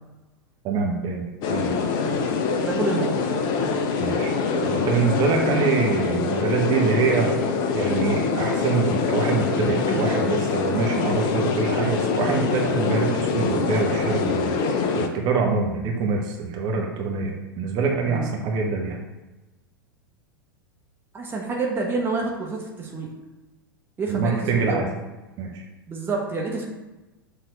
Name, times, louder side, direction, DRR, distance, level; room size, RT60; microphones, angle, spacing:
voice 1, 0.6-1.2 1.5-1.8 4.0-4.3 4.6-7.3 7.7-19.0 24.1-24.9 25.4-25.6, right 4 dB, 35° right, 0 dB, 1.3 m, -25 dB
sound 1, 1.4-15.1, left 5 dB, 35° left, 0.8 m, -24 dB
voice 2, 2.6-3.3 18.1-18.3 21.1-23.1 24.0-24.8 25.9-26.6, right 3 dB, 20° right, -1 dB, 1.3 m, -28 dB
6.7 x 4.0 x 5.2 m, 1.1 s
figure-of-eight pair, 95°, 12 cm